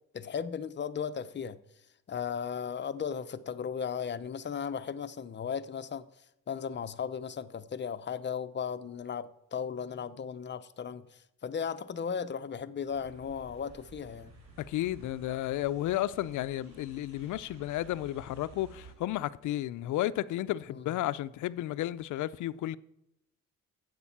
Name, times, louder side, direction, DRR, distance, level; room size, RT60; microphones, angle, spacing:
voice 1, 0.1-1.6 2.1-6.1 6.5-14.3 20.7-20.9, left 7 dB, 35° left, 0.7 m, -36 dB
sound 1, 12.9-18.9, right 4 dB, 60° right, 4.2 m, -54 dB
voice 2, 14.7-22.8, left 14 dB, 75° left, 0.5 m, -33 dB
9.7 x 8.1 x 7.2 m
cardioid pair, 90°, 30 cm